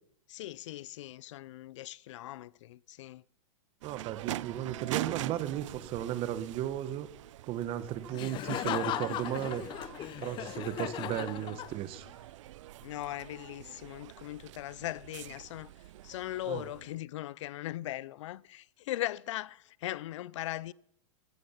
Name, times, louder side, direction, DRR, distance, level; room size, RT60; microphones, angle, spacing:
voice 1, 0.3-3.2 12.8-15.7 16.0-20.7, left 15 dB, 65° left, 0.5 m, -39 dB
voice 2, 3.8-7.1 7.5-9.7 10.2-12.1 16.5-16.6, right 12 dB, 35° right, 1.4 m, -35 dB
sound 1, 3.8-17.0, right 15 dB, 65° right, 0.5 m, -44 dB
Laughter, 8.1-12.1, left 13 dB, 30° left, 0.8 m, -37 dB
16.0 x 15.5 x 5.9 m
hypercardioid pair, 140°, 17 cm